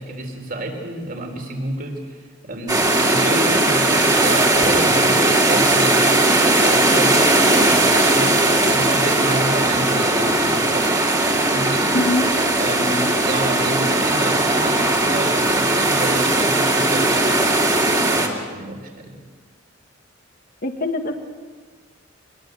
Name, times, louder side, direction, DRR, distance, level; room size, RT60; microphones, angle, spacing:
voice 1, 0.0-2.2 2.4-11.2 11.5-11.9 12.6-19.2, right 1 dB, 50° right, 3 dB, 4.0 m, -30 dB
sound 1, 2.7-18.3, right 2 dB, 20° right, 2.8 m, -18 dB
voice 2, 11.9-12.3 20.6-21.1, left 1 dB, 50° left, 5 dB, 1.9 m, -22 dB
25.0 x 20.5 x 8.0 m, 1.5 s
head